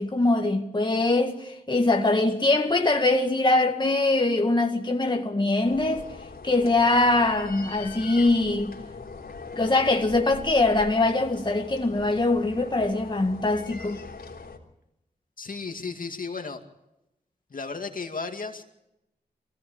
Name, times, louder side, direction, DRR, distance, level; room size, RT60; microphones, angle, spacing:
voice 1, 0.0-6.1 6.4-8.7 9.5-14.0, left 2 dB, 30° left, 2.0 m, -23 dB
sound 1, 5.6-14.6, left 4 dB, 80° left, 3.6 m, -41 dB
voice 2, 15.4-16.6 17.5-18.6, left 4 dB, 60° left, 2.4 m, -34 dB
23.5 x 17.0 x 8.8 m
cardioid pair, 55°, 16 cm